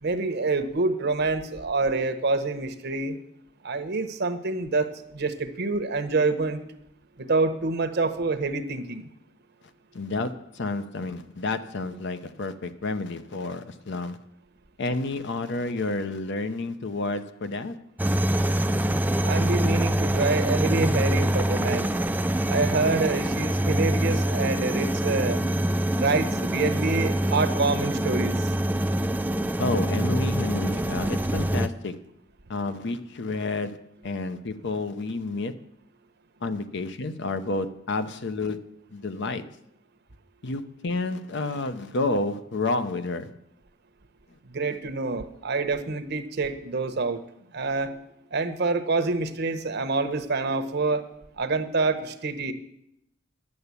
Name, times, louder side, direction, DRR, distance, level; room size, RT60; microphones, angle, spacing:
voice 1, 0.0-3.1 3.6-6.6 7.2-9.1 19.2-21.9 22.5-25.4 26.0-28.5 44.4-47.2 47.5-47.9 48.3-51.0 51.4-52.5, right 3 dB, 60° right, 0.9 m, -26 dB
voice 2, 9.9-14.2 14.8-17.8 29.6-32.0 32.5-35.6 36.4-38.6 38.9-39.5 40.4-43.4, left 2 dB, 65° left, 0.7 m, -30 dB
sound 1, 18.0-31.7, right 1 dB, 10° right, 0.4 m, -25 dB
11.0 x 6.9 x 8.2 m
head